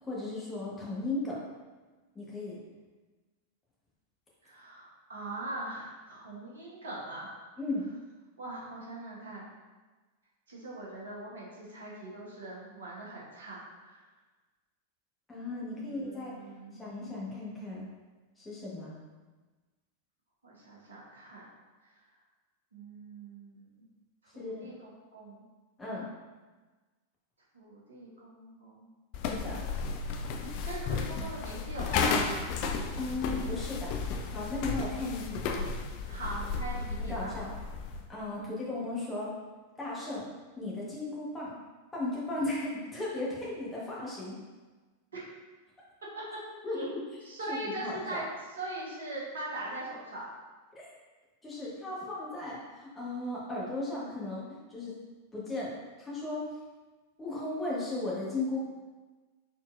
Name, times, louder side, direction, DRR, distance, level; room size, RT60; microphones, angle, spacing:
voice 1, 0.0-1.4 2.1-2.6 7.6-7.8 15.3-16.3 16.8-17.9 18.4-18.9 24.3-24.7 25.8-26.1 29.3-29.6 30.9-31.0 33.0-33.9 34.3-35.6 37.0-37.5 38.1-39.3 39.8-40.3 40.6-41.6 41.9-44.4 46.6-48.2 50.7-50.9 51.4-54.9 55.3-55.7 56.0-56.5 57.2-58.6, left 2 dB, 15° left, -6 dB, 1.3 m, -36 dB
voice 2, 4.4-7.3 8.4-9.5 10.5-14.0 15.9-16.8 20.4-21.4 22.7-23.8 24.3-25.4 27.5-28.9 30.6-32.4 36.0-37.4 38.4-38.6 45.1-45.2 46.7-46.9 47.3-48.2 48.6-50.3, right 2 dB, 70° right, -6 dB, 1.3 m, -41 dB
sound 1, 29.1-38.1, left 5 dB, 45° left, 0.4 m, -33 dB
4.2 x 4.0 x 2.5 m, 1.3 s
figure-of-eight pair, 90°, 0 cm